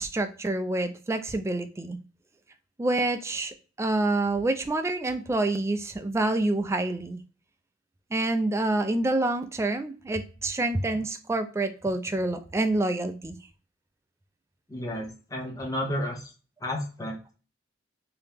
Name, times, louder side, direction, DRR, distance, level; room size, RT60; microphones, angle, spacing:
voice 1, 0.0-2.0 2.8-7.2 8.1-13.4, right 2 dB, 15° right, 7 dB, 0.3 m, -27 dB
voice 2, 14.7-16.3 16.6-17.3, left 1 dB, 20° left, -1 dB, 0.7 m, -32 dB
2.9 x 2.7 x 3.4 m, 0.35 s
head